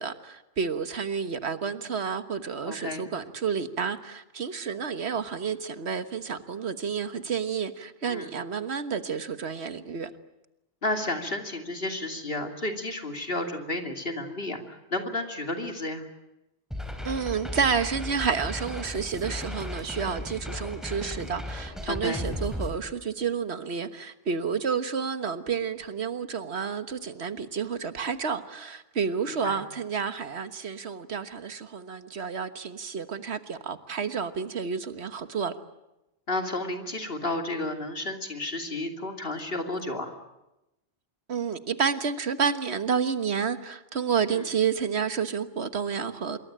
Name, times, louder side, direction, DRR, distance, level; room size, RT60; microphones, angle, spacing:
voice 1, 0.0-10.1 17.0-35.5 41.3-46.4, right 6 dB, 85° right, 1.6 m, -30 dB
voice 2, 2.7-3.0 8.1-8.3 10.8-16.0 21.9-22.2 29.3-29.6 36.3-40.1 44.3-44.4, left 2 dB, 65° left, 3.0 m, -32 dB
sound 1, 16.7-22.7, left 1 dB, ahead, 4.1 m, -35 dB
26.0 x 23.0 x 8.8 m
omnidirectional pair, 1.1 m